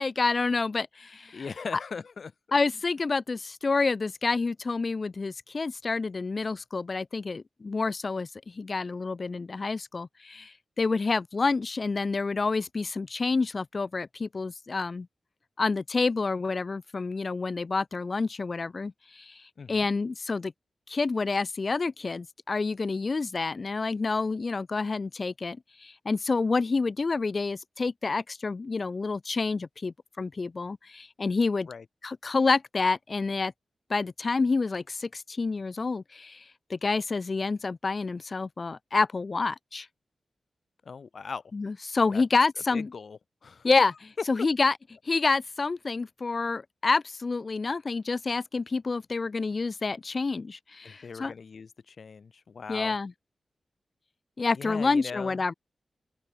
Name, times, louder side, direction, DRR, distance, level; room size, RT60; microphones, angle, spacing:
voice 1, 0.0-1.4 2.5-15.1 15.6-19.4 19.7-20.5 20.9-31.7 32.0-33.5 33.9-36.4 36.7-39.9 41.5-42.9 43.6-44.7 45.1-51.3 52.7-53.1 54.4-55.5, left 4 dB, 40° left, 0.6 m, -28 dB
voice 2, 1.3-2.6 19.6-19.9 31.7-31.9 40.8-41.4 42.1-42.2 42.7-43.7 50.8-53.0 54.5-55.4, left 5 dB, 55° left, 1.8 m, -40 dB
open air
wide cardioid pair, 135°, 0 cm